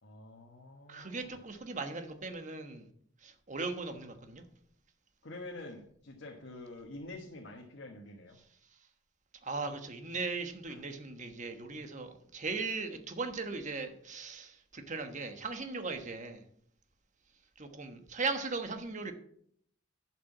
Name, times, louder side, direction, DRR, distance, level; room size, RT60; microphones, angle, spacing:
voice 1, 0.0-1.4 5.2-8.4 10.7-10.8, left 2 dB, 60° left, 0 dB, 1.4 m, -47 dB
voice 2, 0.9-2.9 3.2-4.4 9.4-16.4 17.6-19.1, right 4 dB, 40° right, 7 dB, 1.3 m, -38 dB
11.5 x 6.1 x 7.3 m, 0.66 s
head